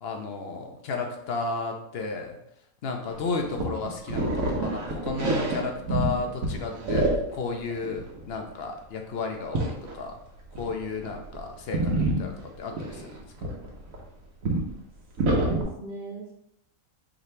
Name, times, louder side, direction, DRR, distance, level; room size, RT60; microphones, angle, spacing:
voice 1, 0.0-2.4 2.8-7.1 7.3-10.2 10.6-13.2, left 4 dB, 55° left, 3 dB, 0.8 m, -33 dB
sound 1, 3.1-6.2 6.4-7.4 7.7-8.2 9.5-9.9 10.5-10.7 11.0-11.4 11.7-14.0 14.4-14.7 15.2-15.6, right 2 dB, 75° right, 1.2 m, -27 dB
voice 2, 15.2-16.3, right 2 dB, 50° right, -3 dB, 0.7 m, -37 dB
4.9 x 2.8 x 3.2 m, 0.77 s
omnidirectional pair, 1.4 m